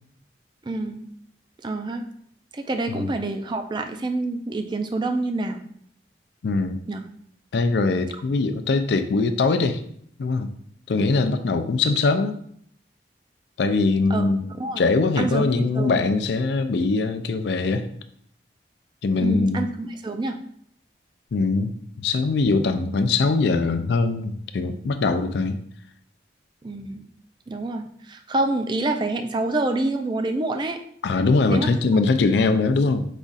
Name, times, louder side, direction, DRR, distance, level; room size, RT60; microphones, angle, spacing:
voice 1, 0.6-1.0 1.6-2.0 2.5-5.6 6.9-7.1 14.1-14.3 14.6-14.8 15.2-16.0 19.2-20.4 26.6-27.1 27.5-30.8 31.5-31.7, right 2 dB, 25° right, 6 dB, 0.3 m, -27 dB
voice 2, 6.4-6.8 7.5-9.8 10.2-10.5 10.9-12.4 13.6-14.5 14.8-17.8 19.0-19.7 21.3-21.7 22.0-25.6 31.0-33.1, left 3 dB, 70° left, 9 dB, 0.4 m, -22 dB
4.9 x 2.4 x 4.0 m, 0.66 s
head